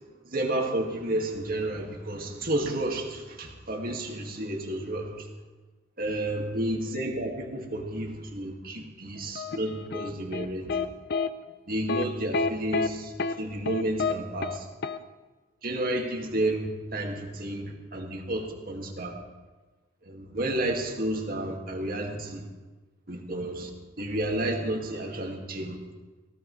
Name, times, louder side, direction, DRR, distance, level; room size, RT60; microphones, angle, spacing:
voice 1, 0.3-5.3 6.0-10.8 11.7-14.7 15.6-16.7 16.9-19.1 20.1-22.5 23.1-23.7 24.0-25.8, right 1 dB, 50° right, 1 dB, 2.2 m, -31 dB
sound 1, 9.4-10.9 11.1-11.3 11.9-12.1 12.3-12.9 13.2-13.3 13.7-14.1 14.4-14.6 14.8-15.0, left 4 dB, 55° left, 0.7 m, -28 dB
19.0 x 17.0 x 3.3 m, 1.2 s
head